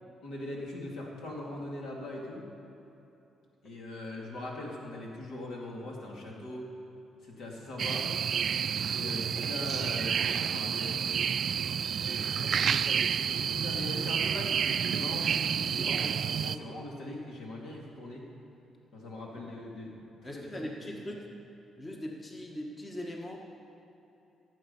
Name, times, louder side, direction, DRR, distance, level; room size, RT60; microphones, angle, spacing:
voice 1, 0.2-2.5 3.6-6.6 7.2-8.1 8.9-11.0 12.0-13.0 13.3-18.2 18.9-20.7, left 1 dB, 75° left, -2 dB, 2.6 m, -41 dB
sound 1, 7.8-16.6, right 7 dB, 55° right, 0.3 m, -30 dB
voice 2, 12.4-13.1 20.2-21.2 21.8-23.6, left 1 dB, 25° left, 0 dB, 1.5 m, -41 dB
16.5 x 7.8 x 5.5 m, 3.0 s
cardioid pair, 90°, 0 cm